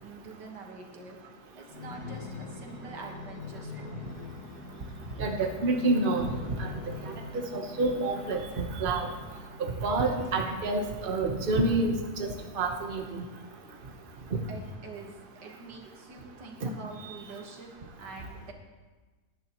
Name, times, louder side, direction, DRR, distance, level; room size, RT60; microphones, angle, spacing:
voice 1, 0.0-1.2 1.6-4.1 14.5-17.7 18.0-18.5, right 3 dB, 90° right, 1 dB, 2.2 m, -45 dB
sound 1, 1.7-9.6 10.2-11.5 12.1-12.2, left 4 dB, 70° left, 1.9 m, -43 dB
voice 2, 5.2-6.3 6.6-6.7 7.3-9.1 9.6-11.9 12.5-13.2 14.3-14.4 16.6-16.7, right 2 dB, 35° right, 2 dB, 1.2 m, -28 dB
18.5 x 11.0 x 3.1 m, 1.3 s
omnidirectional pair, 1.8 m